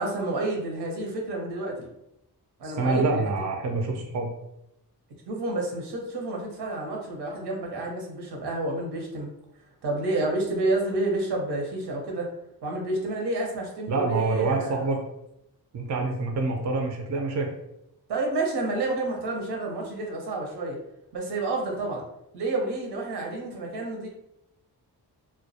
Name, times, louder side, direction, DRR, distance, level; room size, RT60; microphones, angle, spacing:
voice 1, 0.0-1.9 2.6-3.2 5.3-9.3 9.8-12.3 12.6-14.8 18.1-20.8 21.1-22.0 22.3-24.1, right 2 dB, 85° right, 0 dB, 0.8 m, -29 dB
voice 2, 2.6-4.3 13.9-15.0 15.7-17.5, right 3 dB, 45° right, 2 dB, 0.4 m, -26 dB
2.2 x 2.1 x 2.7 m, 0.83 s
wide cardioid pair, 105°, 39 cm